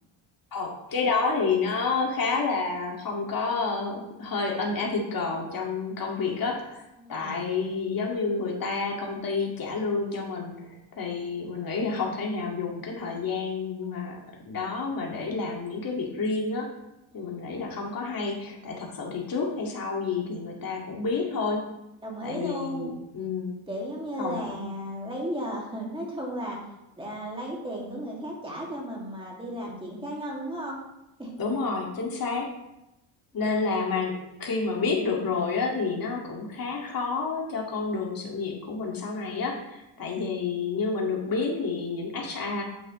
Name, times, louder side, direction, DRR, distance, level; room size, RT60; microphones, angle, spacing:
voice 1, 0.5-14.2 14.5-16.7 17.1-21.6 22.2-23.5 24.2-24.7 31.4-32.5 33.3-34.1 34.4-42.6, left 4 dB, 45° left, -1 dB, 2.3 m, -29 dB
voice 2, 7.0-7.4 17.1-17.4 22.0-22.9 23.7-26.6 27.0-30.8 31.2-31.3 40.0-40.2, equal, 10° right, -3 dB, 2.4 m, -35 dB
9.3 x 7.8 x 3.2 m, 0.90 s
cardioid pair, 125°, 48 cm